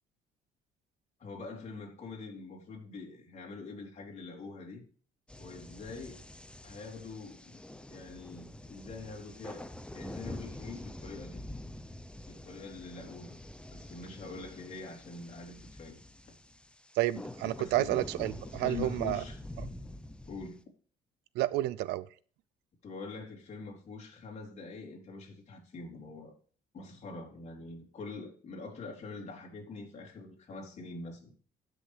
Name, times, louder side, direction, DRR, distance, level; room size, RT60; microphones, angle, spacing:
voice 1, 1.2-4.8 5.4-6.2 6.6-7.6 7.9-11.4 12.3-13.4 13.7-16.0 17.6-18.0 18.4-19.4 20.3-20.6 22.8-26.3 26.7-31.3, left 4 dB, 40° left, 3.5 m, -44 dB
sound 1, 5.3-20.6, left 1 dB, 5° left, 0.7 m, -46 dB
voice 2, 17.0-19.2 21.4-22.1, right 15 dB, 85° right, 0.5 m, -30 dB
15.0 x 6.4 x 3.3 m
cardioid pair, 110°, 17 cm